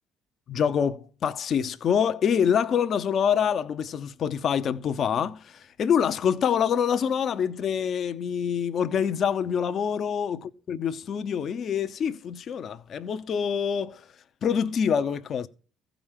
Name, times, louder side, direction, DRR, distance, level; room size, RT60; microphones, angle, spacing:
voice 1, 0.5-10.4 10.7-14.0 14.4-15.5, left 7 dB, 55° left, 0.8 m, -26 dB
15.0 x 5.1 x 7.4 m
supercardioid pair, 65°, 0 cm